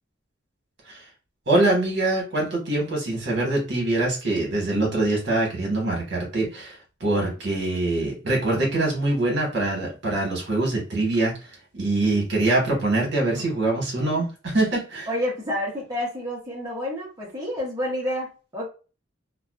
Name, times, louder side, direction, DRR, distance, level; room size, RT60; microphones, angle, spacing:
voice 1, 1.5-11.3 11.7-15.1, right 2 dB, 60° right, -1 dB, 1.1 m, -24 dB
voice 2, 15.1-18.7, left 1 dB, 20° right, -5 dB, 0.7 m, -29 dB
2.4 x 2.3 x 2.3 m, 0.33 s
head